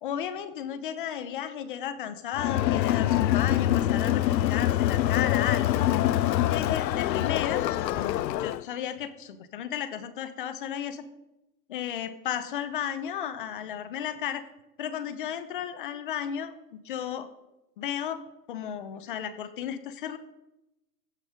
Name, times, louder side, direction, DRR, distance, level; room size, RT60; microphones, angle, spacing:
voice 1, 0.0-5.9 6.4-11.0 11.7-14.4 14.8-17.3 17.8-18.2 18.5-20.2, left 9 dB, 30° left, 14 dB, 0.7 m, -34 dB
Crowd, 2.3-8.6, left 13 dB, 80° left, 0.6 m, -25 dB
15.0 x 7.4 x 5.0 m, 0.94 s
hypercardioid pair, 155°, 50 cm